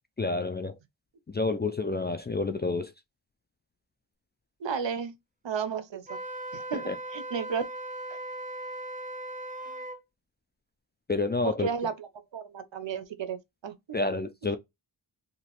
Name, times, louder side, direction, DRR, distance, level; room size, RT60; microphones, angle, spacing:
voice 1, 0.2-0.8 1.3-2.9 6.7-7.0 11.1-11.7 13.9-14.6, left 3 dB, 25° left, 0.3 m, -29 dB
voice 2, 4.6-5.1 5.4-6.2 6.5-7.6 9.7-9.8 11.4-12.1 12.3-13.7, right 6 dB, 70° right, 0.7 m, -33 dB
Wind instrument woodwind instrument, 6.1-10.0, right 1 dB, 15° right, 0.8 m, -38 dB
2.9 x 2.6 x 2.8 m
wide cardioid pair, 50°, 46 cm